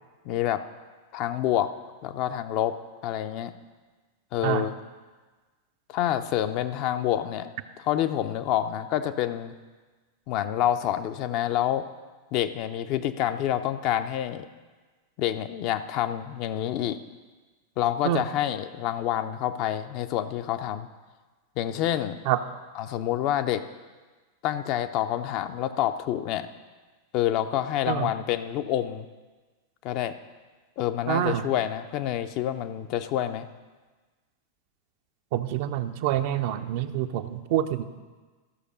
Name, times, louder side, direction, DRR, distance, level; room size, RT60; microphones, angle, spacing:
voice 1, 0.2-0.6 1.1-1.7 2.0-2.8 3.0-3.5 4.3-4.7 5.9-7.5 7.9-9.5 10.3-11.9 12.3-14.5 15.2-17.0 17.8-20.9 21.6-22.2 22.8-23.7 24.4-26.5 27.1-29.1 29.8-30.2 30.8-33.5, left 11 dB, 40° left, 9 dB, 0.5 m, -27 dB
voice 2, 31.1-31.5 35.3-37.8, right 12 dB, 50° right, 9 dB, 0.6 m, -26 dB
14.0 x 6.5 x 5.2 m, 1.3 s
figure-of-eight pair, 90°, 0 cm